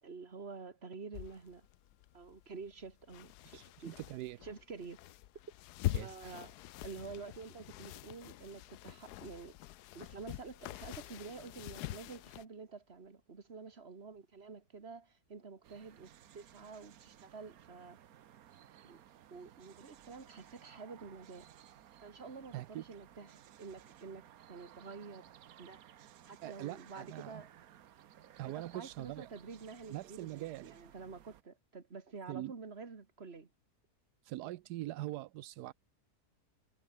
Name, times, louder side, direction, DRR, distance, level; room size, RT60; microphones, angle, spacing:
voice 1, 0.0-1.7 2.1-3.9 4.4-5.0 6.0-9.6 9.9-18.0 18.8-19.0 19.3-21.5 22.0-25.3 25.6-25.8 26.2-27.5 28.5-33.5, right 4 dB, 40° right, 2.3 m, -49 dB
sound 1, 1.1-12.5, left 15 dB, 90° left, 1.2 m, -44 dB
voice 2, 3.5-4.4 5.9-6.4 22.5-22.8 26.4-27.4 28.4-29.3 29.9-30.8 32.3-32.5 34.2-35.7, right 16 dB, 85° right, 1.2 m, -43 dB
sound 2, 15.6-31.4, right 11 dB, 70° right, 1.3 m, -59 dB
omnidirectional pair, 1.7 m